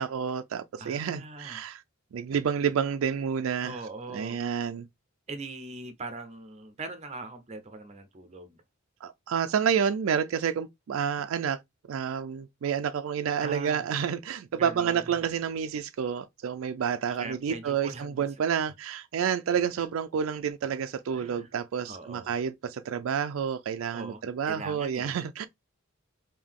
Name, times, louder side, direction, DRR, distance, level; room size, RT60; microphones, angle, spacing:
voice 1, 0.0-1.8 2.1-3.8 4.1-4.9 9.0-11.6 11.9-25.5, right 7 dB, 80° right, 0.4 m, -29 dB
voice 2, 0.8-1.7 3.6-4.5 5.3-8.6 13.4-13.8 14.5-15.1 17.1-18.1 21.1-21.5 21.9-22.3 23.9-25.2, right 3 dB, 35° right, 0.6 m, -41 dB
3.6 x 2.7 x 3.5 m
head